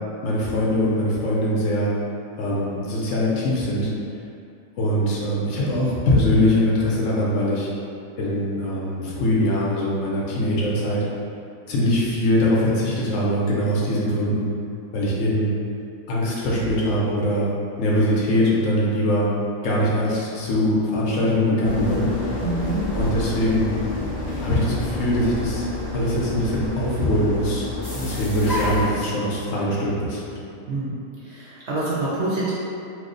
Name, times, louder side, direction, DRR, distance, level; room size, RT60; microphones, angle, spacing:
voice 1, 0.2-1.9 2.4-3.9 4.8-7.7 8.2-11.0 11.7-14.5 14.9-15.5 16.1-17.5 17.8-19.3 19.6-22.1 22.9-23.7 24.4-25.7 25.9-27.7 28.0-30.2, left 1 dB, 70° left, -6 dB, 0.9 m, -22 dB
sound 1, 21.6-28.9, left 2 dB, 40° left, 0.7 m, -29 dB
voice 2, 22.4-22.8 27.9-28.2 30.7-30.9 31.2-32.5, right 2 dB, 65° right, -7 dB, 0.7 m, -26 dB
3.0 x 2.0 x 3.7 m, 2.6 s
omnidirectional pair, 1.5 m